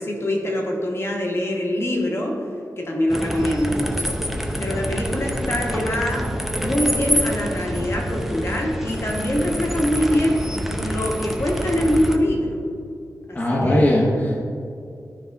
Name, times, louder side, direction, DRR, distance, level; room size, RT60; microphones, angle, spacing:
voice 1, 0.0-2.4 2.8-4.2 4.6-6.2 6.6-10.4 10.8-12.6 13.3-13.8, left 1 dB, 40° left, 0 dB, 1.3 m, -24 dB
sound 1, 3.1-12.2, equal, 5° right, 0.6 m, -26 dB
voice 2, 13.3-14.5, left 1 dB, 20° left, -4 dB, 1.0 m, -19 dB
12.0 x 5.3 x 3.5 m, 2.4 s
wide cardioid pair, 135°, 7 cm